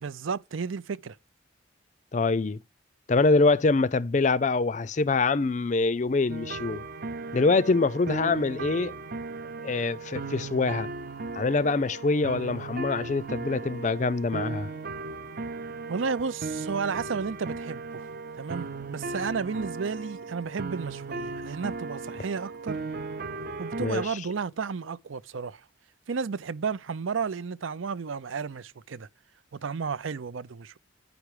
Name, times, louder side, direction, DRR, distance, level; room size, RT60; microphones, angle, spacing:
voice 1, 0.0-1.2 15.9-22.8 23.6-25.6 26.1-29.1 29.5-30.8, right 5 dB, 85° right, 0.5 m, -32 dB
voice 2, 2.1-2.6 3.1-6.8 7.3-8.9 9.6-10.9 11.4-14.7 23.8-24.0, left 3 dB, 40° left, 0.4 m, -24 dB
sound 1, 6.3-24.1, right 3 dB, 50° right, 0.7 m, -37 dB
9.3 x 6.0 x 4.9 m
head